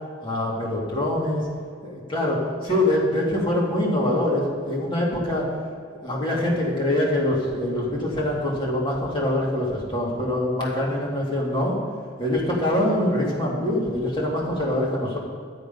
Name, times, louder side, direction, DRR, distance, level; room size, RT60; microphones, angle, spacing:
voice 1, 0.2-1.4 1.8-5.5 6.0-11.7 12.2-15.2, left 1 dB, 25° left, -4 dB, 2.5 m, -24 dB
13.0 x 8.0 x 5.4 m, 2.1 s
head